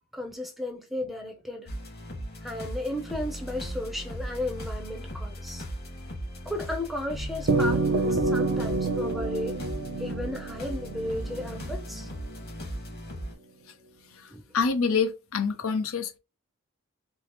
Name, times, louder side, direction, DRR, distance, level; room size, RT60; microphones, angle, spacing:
voice 1, 0.1-1.7 2.4-5.6 6.5-9.5 10.0-12.1 14.3-14.4, left 1 dB, ahead, 0.6 m, -34 dB
sound 1, 1.7-13.3, equal, 50° left, 1.6 m, -37 dB
sound 2, 7.5-12.1, right 3 dB, 60° right, 0.5 m, -28 dB
voice 2, 14.1-16.2, left 5 dB, 75° left, 0.6 m, -27 dB
4.5 x 2.0 x 2.9 m
head